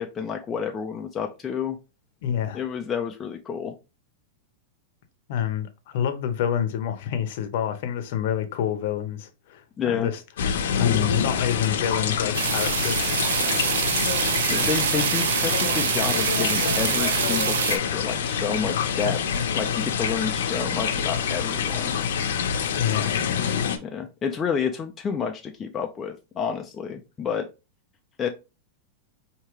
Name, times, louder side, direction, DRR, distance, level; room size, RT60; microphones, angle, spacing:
voice 1, 0.0-1.8 2.5-3.8 9.8-10.1 14.5-19.2 19.5-22.0 23.8-27.5 28.2-28.3, left 6 dB, 15° left, 0.4 m, -29 dB
voice 2, 2.2-2.6 5.3-10.2 10.8-13.1 13.3-13.8 22.8-23.1 23.6-23.7, left 9 dB, 55° left, 0.7 m, -28 dB
sound 1, 10.4-23.8, left 7 dB, 85° left, 0.7 m, -26 dB
sound 2, 12.3-17.8, right 8 dB, 85° right, 0.5 m, -25 dB
4.7 x 2.8 x 3.0 m
supercardioid pair, 165°, 0 cm